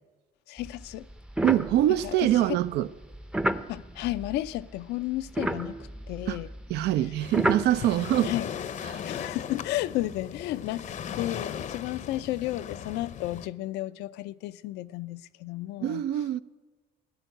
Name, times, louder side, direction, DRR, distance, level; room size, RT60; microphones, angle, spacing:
voice 1, 0.5-1.0 2.0-2.3 3.7-5.7 6.1-6.5 6.8-6.9 8.2-8.5 9.1-10.9 11.1-16.0, left 16 dB, 90° left, 0.5 m, -32 dB
sound 1, 0.6-4.8 5.1-8.0, right 1 dB, 5° right, 0.6 m, -32 dB
voice 2, 1.4-2.9 6.3-6.4 6.7-8.3 8.9-9.0 15.8-16.4, right 13 dB, 80° right, 0.6 m, -24 dB
Waves surf, 7.2-13.5, left 8 dB, 45° left, 0.7 m, -37 dB
14.5 x 10.5 x 9.1 m
cardioid pair, 110°, 17 cm